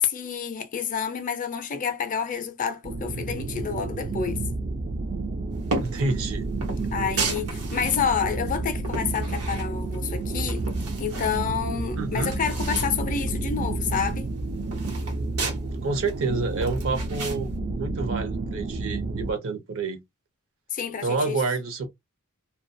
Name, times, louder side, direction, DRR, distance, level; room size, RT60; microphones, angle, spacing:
voice 1, 0.0-4.4 6.9-10.6 11.0-14.3 20.7-21.4, left 7 dB, 35° left, 0.4 m, -29 dB
sound 1, 2.8-19.3, right 3 dB, 35° right, 0.3 m, -30 dB
sound 2, 5.7-6.1 6.6-8.0 8.5-10.0 10.4-11.4 11.8-11.9 12.1-12.9 13.3-13.4 13.7-15.6 16.1-17.4, right 3 dB, 80° right, 1.0 m, -33 dB
voice 2, 5.8-6.5 12.0-12.3 15.8-17.5 17.8-20.0 21.0-21.9, right 3 dB, 65° right, 0.7 m, -28 dB
2.2 x 2.2 x 2.5 m
head